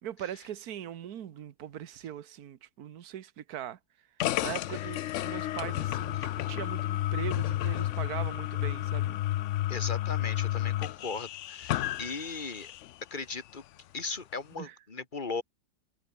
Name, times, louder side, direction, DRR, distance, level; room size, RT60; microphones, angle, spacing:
voice 1, 0.0-3.8 4.4-9.2 14.5-14.7, right 10 dB, 65° right, 1.5 m, -40 dB
sound 1, 4.2-12.9, left 13 dB, 75° left, 0.7 m, -31 dB
voice 2, 9.7-12.7 13.1-13.6 13.9-15.4, left 4 dB, 30° left, 2.1 m, -37 dB
omnidirectional pair, 1.8 m